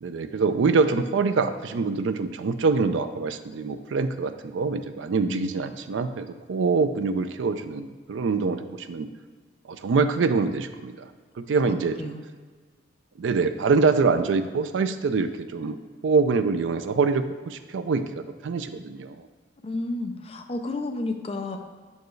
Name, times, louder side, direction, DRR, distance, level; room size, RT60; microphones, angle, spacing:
voice 1, 0.0-9.1 9.7-11.1 11.4-12.1 13.2-15.8 16.0-19.2, right 4 dB, 75° right, 10 dB, 0.4 m, -25 dB
voice 2, 11.7-12.2 19.6-21.6, left 2 dB, 30° left, 5 dB, 0.5 m, -31 dB
6.8 x 4.5 x 3.2 m, 1.5 s
head